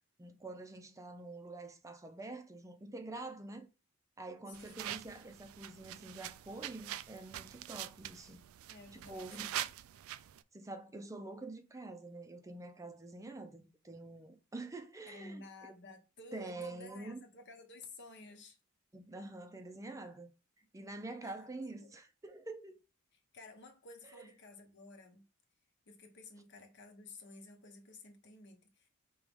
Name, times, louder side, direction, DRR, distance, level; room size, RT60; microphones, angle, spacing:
voice 1, 0.2-3.7 4.2-8.4 8.7-9.5 10.5-15.4 16.3-17.2 18.9-20.3 20.7-22.8 24.1-24.3, right 2 dB, 15° right, 0.5 m, -46 dB
voice 2, 4.5-4.8 8.7-9.7 15.1-18.6 21.2-21.5 21.8-21.9 23.3-25.3 25.9-28.9, left 2 dB, 60° left, 0.9 m, -53 dB
sound 1, 4.5-10.4, right 12 dB, 85° right, 0.3 m, -44 dB
4.7 x 3.0 x 3.5 m
head